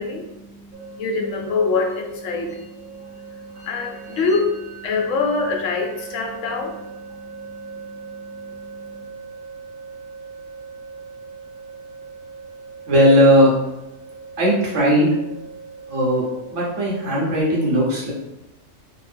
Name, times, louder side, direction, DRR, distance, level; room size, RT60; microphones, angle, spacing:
voice 1, 0.0-9.0, left 4 dB, 70° left, 2 dB, 0.9 m, -26 dB
sound 1, 0.7-17.4, right 5 dB, 90° right, 1.4 m, -40 dB
voice 2, 12.9-13.5 14.4-15.1 15.9-16.2 16.5-18.1, equal, 65° right, -4 dB, 1.2 m, -17 dB
2.8 x 2.5 x 3.3 m, 0.95 s
omnidirectional pair, 1.4 m